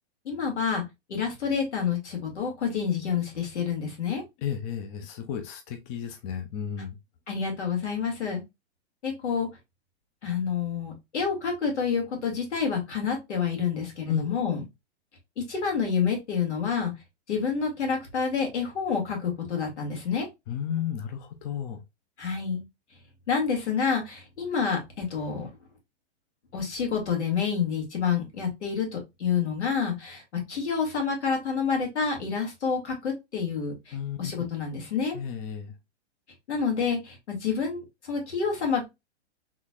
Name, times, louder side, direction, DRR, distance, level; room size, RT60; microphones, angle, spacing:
voice 1, 0.3-0.8 1.1-4.2 7.3-8.4 9.0-9.5 10.2-14.6 15.5-16.9 17.3-20.3 22.2-22.6 23.3-25.5 26.5-30.2 30.5-35.2 36.5-38.8, left 6 dB, 85° left, 2.0 m, -28 dB
voice 2, 4.4-7.0 14.1-14.3 20.5-21.8 33.9-34.2 35.1-35.7, left 8 dB, 30° left, 0.5 m, -33 dB
3.8 x 3.1 x 2.3 m
hypercardioid pair, 140°, 34 cm